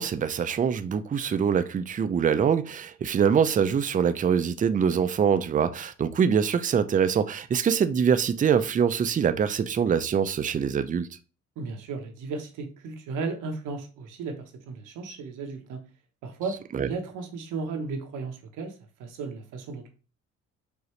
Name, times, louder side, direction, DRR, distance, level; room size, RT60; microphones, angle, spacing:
voice 1, 0.0-11.1 16.7-16.9, right 7 dB, 25° right, 0.4 m, -24 dB
voice 2, 11.6-15.8 16.2-18.7 19.0-19.9, right 4 dB, 90° right, 1.0 m, -35 dB
4.9 x 2.7 x 3.1 m
cardioid pair, 90°, 30 cm